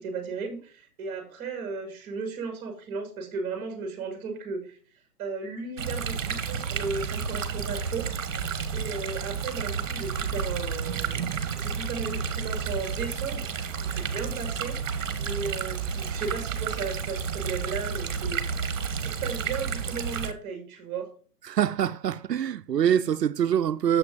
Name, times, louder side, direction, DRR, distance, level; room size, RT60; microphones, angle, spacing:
voice 1, 0.0-4.8 5.2-8.1 8.7-11.2 11.6-13.5 13.8-14.9 15.2-18.7 19.0-21.1, right 4 dB, 20° right, 1.9 m, -35 dB
sound 1, 5.8-20.3, right 6 dB, 55° right, 1.1 m, -31 dB
voice 2, 21.4-24.0, right 9 dB, 85° right, 0.6 m, -24 dB
7.0 x 6.0 x 3.8 m
figure-of-eight pair, 140°, 48 cm